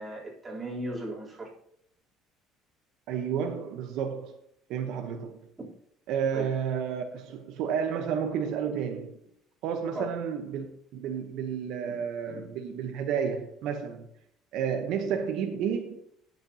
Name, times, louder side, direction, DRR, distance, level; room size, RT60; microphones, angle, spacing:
voice 1, 0.0-1.5 6.3-6.5 9.9-10.1 11.9-12.0 12.3-12.4 15.5-15.6, right 1 dB, 15° right, 3.5 m, -36 dB
voice 2, 3.1-4.4 4.7-5.5 6.1-9.2 9.6-14.1 14.5-16.0, right 7 dB, 70° right, 0.9 m, -31 dB
16.0 x 6.6 x 2.8 m
cardioid pair, 135°, 0 cm